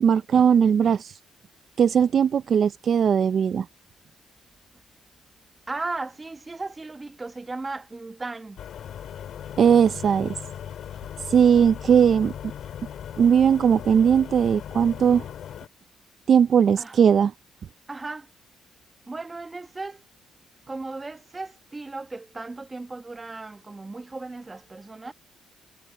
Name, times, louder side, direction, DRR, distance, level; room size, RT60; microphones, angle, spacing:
voice 1, 0.0-1.2 1.8-3.7 9.6-10.3 11.3-12.3 13.2-15.3 16.3-17.3, right 7 dB, 55° right, 0.4 m, -19 dB
voice 2, 5.7-8.6 16.8-17.0 17.9-18.3 19.1-20.0 20.7-25.1, right 3 dB, 25° right, 1.4 m, -36 dB
sound 1, 8.6-15.7, left 9 dB, 70° left, 2.9 m, -38 dB
cardioid pair, 90°, 0 cm